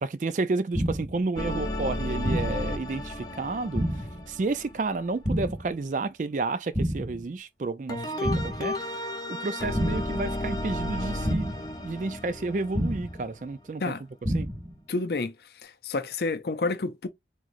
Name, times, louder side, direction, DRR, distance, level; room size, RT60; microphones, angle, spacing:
voice 1, 0.0-3.9 4.3-8.3 8.6-8.7 9.3-13.9 14.3-14.5, right 3 dB, 45° right, 0.4 m, -31 dB
sound 1, 0.7-1.2 2.2-2.7 3.7-4.2 5.2-5.7 6.7-7.2 8.2-8.7 9.7-10.2 11.2-11.7 12.7-13.2 14.2-14.7, equal, 20° right, 1.0 m, -29 dB
sound 2, 1.4-5.5 7.9-13.5, left 1 dB, 20° left, 0.7 m, -33 dB
voice 2, 14.9-17.1, left 3 dB, 60° left, 0.5 m, -30 dB
3.7 x 3.0 x 2.5 m
head